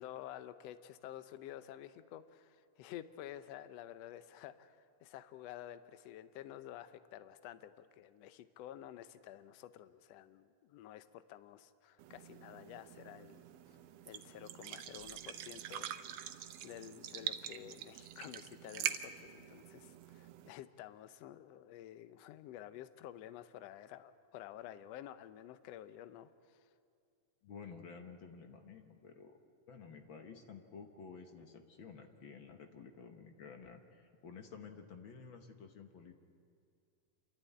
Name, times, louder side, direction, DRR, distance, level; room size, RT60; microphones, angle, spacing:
voice 1, 0.0-13.8 14.0-26.7, left 12 dB, 75° left, 12 dB, 1.6 m, -51 dB
sound 1, 12.0-20.5, right 11 dB, 75° right, 1.6 m, -45 dB
voice 2, 27.4-29.4 29.7-36.1, left 5 dB, 55° left, 5 dB, 1.5 m, -52 dB
28.0 x 13.0 x 9.2 m, 2.3 s
omnidirectional pair, 3.6 m